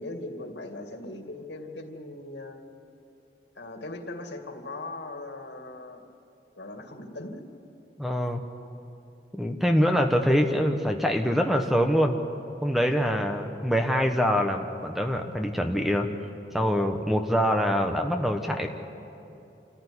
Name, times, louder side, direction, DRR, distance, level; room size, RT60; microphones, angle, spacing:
voice 1, 0.0-2.6 3.6-6.0 6.6-7.4, left 2 dB, 85° left, 4 dB, 2.4 m, -39 dB
voice 2, 8.0-8.4 9.3-12.2 12.6-16.1 16.5-18.7, equal, ahead, 4 dB, 1.1 m, -24 dB
27.0 x 15.0 x 9.9 m, 2.8 s
head